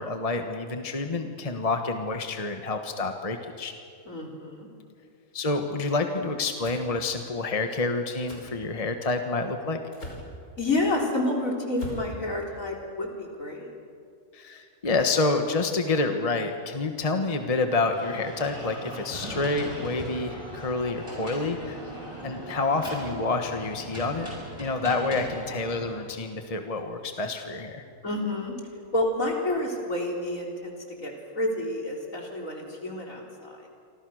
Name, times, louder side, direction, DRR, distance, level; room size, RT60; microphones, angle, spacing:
voice 1, 0.0-3.7 5.3-9.8 14.3-21.8 22.2-24.3 24.6-27.8, left 3 dB, 25° left, 5 dB, 1.5 m, -28 dB
voice 2, 4.1-4.7 10.6-13.7 28.0-28.5 28.9-30.8 31.0-33.6, left 1 dB, 65° left, 0 dB, 4.4 m, -29 dB
sound 1, 6.6-6.8 8.3-8.5 9.9-10.3 11.7-12.1, left 1 dB, 85° left, 5.8 m, -39 dB
sound 2, 17.9-26.0, right 1 dB, 20° right, 7.4 m, -39 dB
29.0 x 25.0 x 6.5 m, 2.3 s
omnidirectional pair, 1.5 m